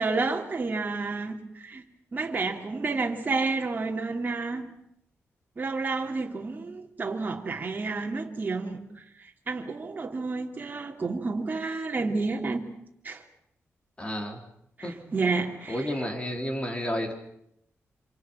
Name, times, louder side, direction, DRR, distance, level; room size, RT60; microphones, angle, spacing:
voice 1, 0.0-1.9 2.1-4.7 5.6-12.7 13.0-13.2 14.8-16.0, right 3 dB, 35° right, 3.2 m, -30 dB
voice 2, 14.0-14.4 14.8-14.9 15.7-17.1, equal, 20° left, 4.9 m, -31 dB
27.5 x 27.0 x 6.0 m
wide cardioid pair, 110°, 5 cm